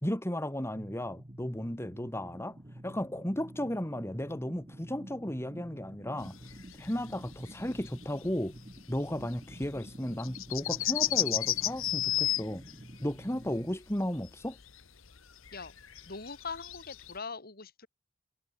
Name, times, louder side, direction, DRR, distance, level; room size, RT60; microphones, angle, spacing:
voice 1, 0.0-2.6 2.8-6.3 6.8-8.6 8.9-12.6 13.0-14.6, equal, 10° left, 3.2 m, -34 dB
sound 1, 0.7-13.7, right 1 dB, 25° right, 1.7 m, -49 dB
sound 2, 6.2-12.8 13.1-13.5 13.9-15.2 15.4-17.1, left 13 dB, 70° left, 1.5 m, -33 dB
voice 2, 16.1-17.9, left 4 dB, 45° left, 3.6 m, -41 dB
head